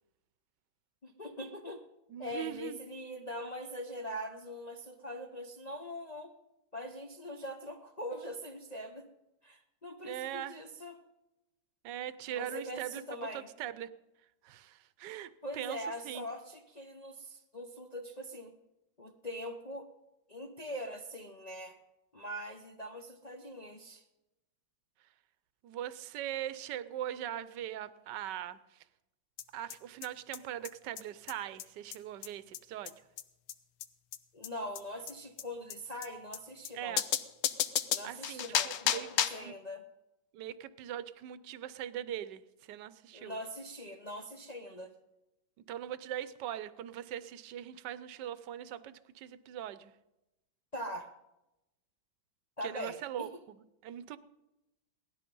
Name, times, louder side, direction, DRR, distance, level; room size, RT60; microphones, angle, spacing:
voice 1, 1.0-1.8 2.2-6.3 6.7-9.1 9.4-11.0 12.3-13.5 15.4-18.5 19.0-19.9 20.3-21.8 22.1-24.0 34.3-37.0 37.9-39.8 43.1-45.0 50.7-51.1 52.6-53.3, equal, 60° left, 3 dB, 0.4 m, -42 dB
voice 2, 2.1-2.8 10.0-10.6 11.8-13.0 13.3-13.9 14.4-15.8 16.0-16.2 25.6-28.6 29.5-32.9 36.7-37.0 38.0-39.1 39.4-39.5 40.3-42.4 42.7-43.4 45.7-49.9 52.6-53.3 53.8-54.2, right 11 dB, 65° right, 15 dB, 1.2 m, -41 dB
sound 1, 29.4-29.5 29.7-29.8 30.0-30.1 30.3-30.4 30.6-30.7 31.0-31.1 31.3-31.4 31.6-31.7 31.9-32.0 32.2-32.3 32.5-32.6 32.9-33.0 33.2-33.3 33.5-33.6 33.8-33.9 34.1-34.2 34.4-34.5 34.7-34.8 35.1-35.2 35.4-35.5 35.7-35.8 36.0-36.1 36.3-36.4 36.6-36.7 37.0-39.5, left 11 dB, 85° left, 1.6 m, -32 dB
18.0 x 13.0 x 5.4 m, 0.94 s
omnidirectional pair, 2.3 m